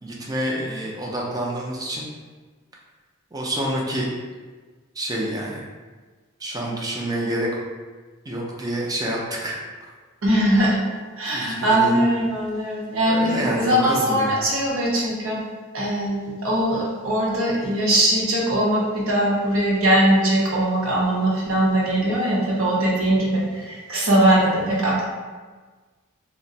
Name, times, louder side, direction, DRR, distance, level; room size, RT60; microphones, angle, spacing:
voice 1, 0.0-2.1 3.3-4.1 5.0-5.7 6.4-7.5 8.3-9.5 9.8-9.9 11.3-12.0 13.1-14.4, right 1 dB, 20° right, -3 dB, 0.5 m, -28 dB
voice 2, 10.2-10.8 11.2-15.4 15.7-25.1, right 1 dB, 70° right, -4 dB, 0.8 m, -21 dB
2.4 x 2.1 x 3.8 m, 1.4 s
head